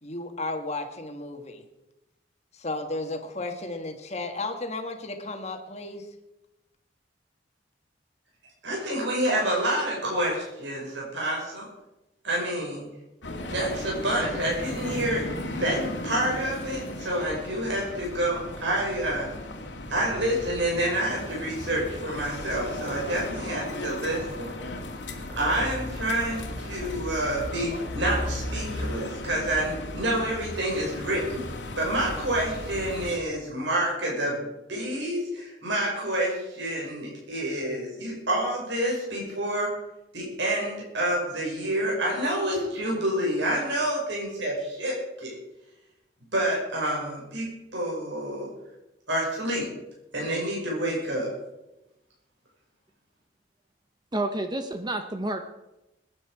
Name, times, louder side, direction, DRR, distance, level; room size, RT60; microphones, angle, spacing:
voice 1, 0.0-1.6 2.5-6.1, left 2 dB, 35° left, 5 dB, 1.7 m, -34 dB
voice 2, 8.6-11.7 12.2-12.8 13.5-15.2 15.6-19.3 19.9-24.5 25.4-31.4 31.8-39.7 40.1-45.3 46.3-48.5 49.1-49.7 50.1-51.3, right 1 dB, 80° right, -3 dB, 5.5 m, -28 dB
sound 1, 13.2-33.2, left 1 dB, 80° left, 2.1 m, -36 dB
voice 3, 54.1-55.4, right 2 dB, 25° right, 7 dB, 0.8 m, -29 dB
21.0 x 9.9 x 4.8 m, 0.95 s
head